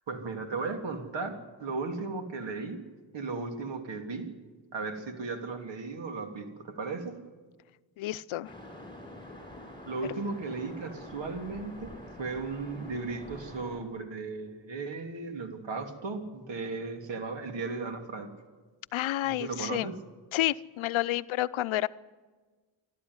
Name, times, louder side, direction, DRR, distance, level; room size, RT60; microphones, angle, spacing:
voice 1, 0.1-2.8 3.1-4.3 4.7-7.2 9.9-18.3 19.3-19.9, right 4 dB, 65° right, 5 dB, 3.0 m, -36 dB
voice 2, 8.0-8.5 18.9-19.9 20.3-21.9, left 15 dB, 85° left, 15 dB, 0.7 m, -30 dB
Waves surf, 8.4-13.8, left 1 dB, 10° left, 6.0 m, -46 dB
29.0 x 12.5 x 9.6 m, 1.4 s
cardioid pair, 85°, 46 cm